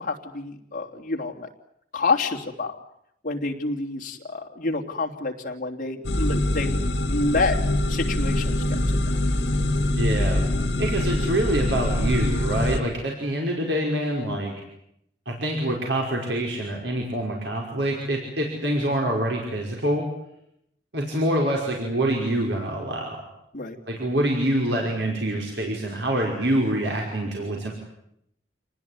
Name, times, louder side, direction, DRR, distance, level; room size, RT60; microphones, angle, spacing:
voice 1, 0.0-1.5 1.9-2.8 3.2-6.8 7.1-7.6 7.9-9.3 23.5-23.8, left 3 dB, 50° left, 2 dB, 3.2 m, -28 dB
sound 1, 6.0-12.8, left 1 dB, 70° left, 3.0 m, -24 dB
voice 2, 9.9-10.4 10.8-14.5 15.3-20.0 20.9-23.2 23.9-27.7, right 1 dB, 80° right, 0 dB, 5.4 m, -26 dB
28.0 x 19.5 x 9.7 m, 0.77 s
head